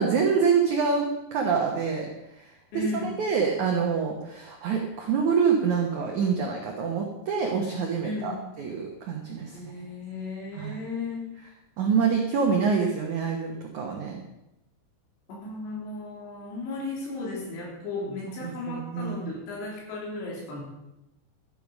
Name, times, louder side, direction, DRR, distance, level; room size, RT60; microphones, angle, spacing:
voice 1, 0.0-2.1 2.4-2.5 2.7-9.6 10.5-10.8 11.8-14.2 18.4-19.3, right 6 dB, 75° right, 1 dB, 1.8 m, -26 dB
voice 2, 2.7-3.1 8.0-8.4 9.5-11.3 15.3-20.6, left 3 dB, 70° left, -2 dB, 5.5 m, -35 dB
13.0 x 10.5 x 5.2 m, 0.91 s
omnidirectional pair, 5.3 m